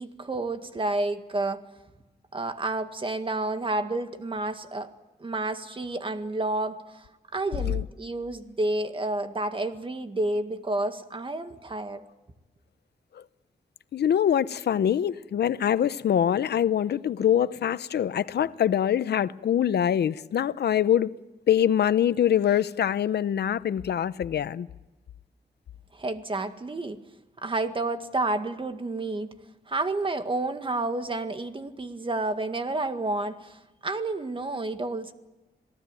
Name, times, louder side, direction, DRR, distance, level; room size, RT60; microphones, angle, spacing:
voice 1, 0.0-1.6 2.3-4.9 5.2-7.1 7.3-12.0 25.9-27.0 27.4-29.3 29.7-35.1, right 2 dB, 30° right, 1.9 m, -30 dB
voice 2, 13.9-21.1 21.5-24.7, left 9 dB, 90° left, 0.8 m, -24 dB
27.5 x 18.0 x 9.1 m
wide cardioid pair, 95°, 17 cm